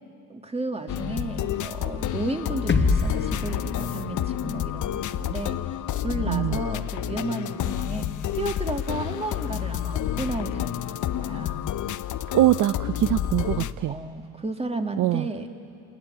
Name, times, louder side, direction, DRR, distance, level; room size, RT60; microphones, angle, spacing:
voice 1, 0.3-8.1 8.3-10.8 11.1-11.7 13.9-15.5, right 2 dB, 15° right, 5 dB, 1.9 m, -33 dB
sound 1, 0.9-13.7, left 11 dB, 55° left, 0.7 m, -29 dB
sound 2, 2.7-6.6, left 3 dB, 30° left, 1.8 m, -29 dB
voice 2, 6.3-6.6 12.3-13.9 15.0-15.3, right 15 dB, 55° right, 13 dB, 0.5 m, -23 dB
26.5 x 19.5 x 7.5 m, 2.5 s
cardioid pair, 85°, 38 cm